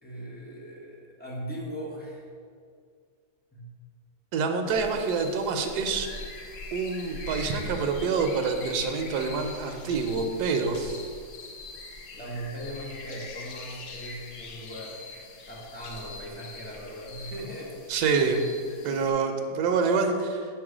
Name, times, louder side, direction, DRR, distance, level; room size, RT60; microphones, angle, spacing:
voice 1, 0.0-2.3 3.5-3.7 12.1-15.0 15.5-17.8, equal, 10° left, -5 dB, 0.7 m, -39 dB
voice 2, 4.3-6.1 6.7-11.0 17.9-18.4 18.8-20.5, right 4 dB, 90° right, 5 dB, 1.2 m, -26 dB
sound 1, 4.7-19.1, left 2 dB, 90° left, 1.2 m, -42 dB
6.5 x 3.1 x 4.9 m, 2.1 s
omnidirectional pair, 1.7 m